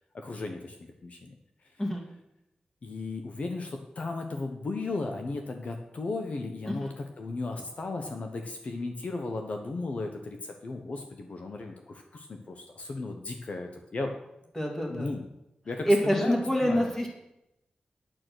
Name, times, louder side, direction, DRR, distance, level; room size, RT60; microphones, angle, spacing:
voice 1, 0.1-1.3 2.8-14.1 14.9-15.3 15.7-16.4 16.6-16.9, left 3 dB, 55° left, 4 dB, 1.1 m, -35 dB
voice 2, 14.6-15.1 15.8-17.1, equal, 15° left, 0 dB, 2.6 m, -26 dB
9.1 x 8.7 x 6.3 m, 0.89 s
wide cardioid pair, 105°, 3 cm